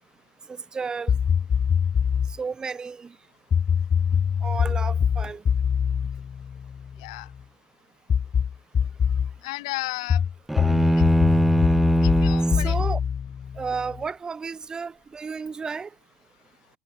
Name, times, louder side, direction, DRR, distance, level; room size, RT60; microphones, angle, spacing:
voice 1, 0.7-1.1 2.4-3.1 4.4-5.4 12.6-13.0 13.6-15.9, right 5 dB, 20° right, 4.7 m, -32 dB
sound 1, 1.1-2.4 3.5-7.2 8.1-9.3 10.1-14.0, left 7 dB, 30° left, 3.3 m, -23 dB
voice 2, 9.4-10.2 10.7-11.0 12.0-12.8, left 21 dB, 60° left, 3.4 m, -34 dB
sound 2, 10.5-12.8, right 1 dB, 5° right, 0.5 m, -21 dB
figure-of-eight pair, 70°, 4 cm